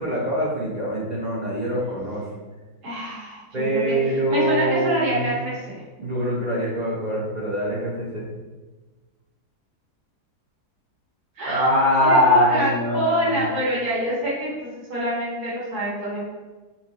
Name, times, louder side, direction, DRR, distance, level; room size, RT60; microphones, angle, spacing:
voice 1, 0.0-2.2 3.5-5.4 6.0-8.3 11.5-13.4, equal, 50° right, -5 dB, 0.5 m, -23 dB
voice 2, 2.8-5.8 11.4-14.6 14.9-16.2, right 1 dB, 70° right, -7 dB, 1.7 m, -26 dB
4.3 x 3.7 x 2.8 m, 1.2 s
omnidirectional pair, 1.8 m